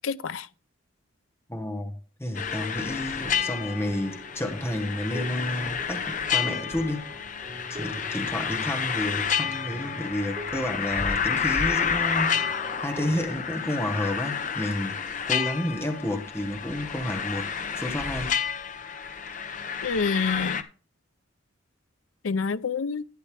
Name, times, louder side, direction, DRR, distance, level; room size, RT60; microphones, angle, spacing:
voice 1, 0.0-0.5 19.8-20.7 22.2-23.0, left 5 dB, 75° left, 0.5 m, -27 dB
voice 2, 1.5-7.0 7.7-12.4 12.8-18.3, left 1 dB, 10° left, 1.3 m, -31 dB
sound 1, 2.3-20.6, left 7 dB, 40° left, 0.8 m, -30 dB
sound 2, 3.2-13.6, equal, 20° right, 5.3 m, -44 dB
12.0 x 9.3 x 3.3 m
head